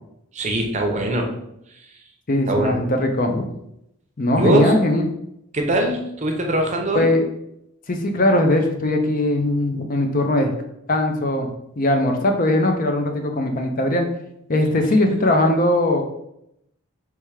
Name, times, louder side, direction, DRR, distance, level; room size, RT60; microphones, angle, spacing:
voice 1, 0.3-1.3 1.7-2.0 2.5-2.8 4.4-4.8 5.5-7.1, right 1 dB, 30° right, 2 dB, 0.6 m, -21 dB
voice 2, 2.3-3.5 4.2-5.1 6.9-7.2 7.9-10.5 10.9-11.5 11.8-14.1 14.5-16.0, left 1 dB, 40° left, 4 dB, 0.5 m, -20 dB
3.4 x 3.2 x 4.7 m, 0.80 s
head